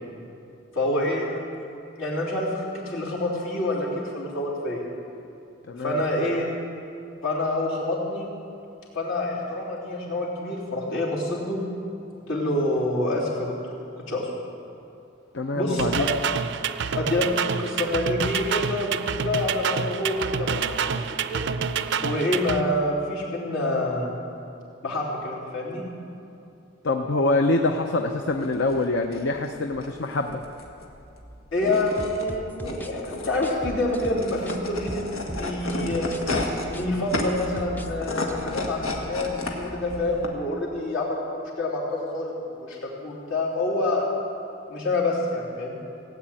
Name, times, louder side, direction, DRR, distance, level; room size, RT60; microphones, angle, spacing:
voice 1, 0.7-1.4 2.0-3.9 4.1-4.9 5.8-6.4 7.2-8.3 8.9-11.6 12.3-13.5 14.0-14.3 15.5-16.1 17.0-17.3 17.6-21.4 22.0-24.1 24.8-25.8 31.5-36.0 36.6-44.1 44.7-45.7, left 1 dB, 75° left, -5 dB, 3.5 m, -27 dB
voice 2, 5.7-6.0 15.3-16.1 26.8-30.4, left 2 dB, 60° left, 5 dB, 0.7 m, -25 dB
sound 1, 15.8-22.6, right 6 dB, 55° right, 0.5 m, -28 dB
sound 2, 28.3-40.3, left 2 dB, 90° left, 1.8 m, -33 dB
sound 3, 32.0-34.6 34.9-37.9 38.2-38.4, equal, 10° left, 0.5 m, -38 dB
17.5 x 8.1 x 8.8 m, 2.8 s
head